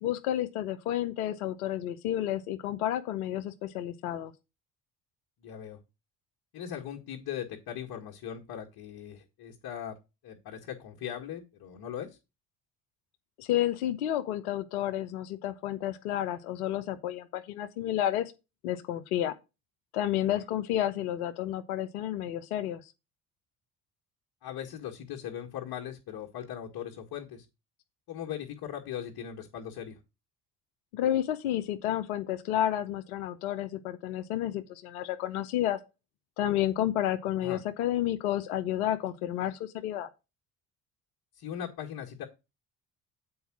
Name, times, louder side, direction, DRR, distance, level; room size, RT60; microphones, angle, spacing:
voice 1, 0.0-4.3 13.4-18.3 18.6-19.3 19.9-22.9 30.9-35.8 36.4-40.1, left 12 dB, 80° left, 0.9 m, -31 dB
voice 2, 5.4-5.8 6.5-10.0 10.2-12.2 20.3-20.4 24.4-27.5 28.1-30.0 37.4-37.6 41.4-42.3, left 9 dB, 55° left, 1.7 m, -39 dB
7.9 x 4.7 x 6.0 m
hypercardioid pair, 60°, 43 cm